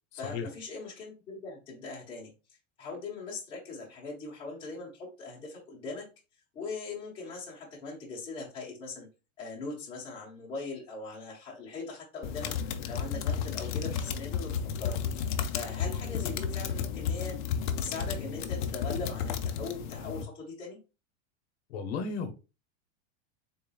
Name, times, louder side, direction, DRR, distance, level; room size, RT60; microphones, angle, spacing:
voice 1, 0.1-2.3 2.8-6.1 6.5-9.1 9.4-12.5 12.9-15.0 15.5-17.4 17.8-20.8, left 3 dB, 15° left, 1.1 m, -40 dB
sound 1, 12.2-20.2, left 7 dB, 45° left, 0.4 m, -33 dB
voice 2, 21.7-22.3, left 5 dB, 60° left, 0.8 m, -34 dB
3.9 x 3.7 x 2.3 m
supercardioid pair, 180°, 36 cm